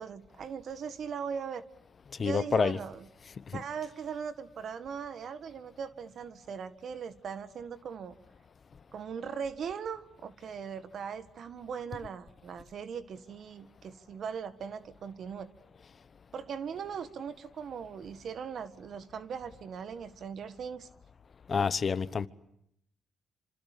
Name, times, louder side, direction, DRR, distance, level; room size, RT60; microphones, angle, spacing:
voice 1, 0.0-1.6 2.2-3.0 3.5-8.1 8.9-15.5 16.3-20.9 21.5-21.7, right 6 dB, 60° right, 1.6 m, -39 dB
voice 2, 2.2-2.8 3.5-3.6 21.5-22.3, left 5 dB, 40° left, 1.1 m, -28 dB
27.0 x 25.5 x 8.5 m
cardioid pair, 90°, 0 cm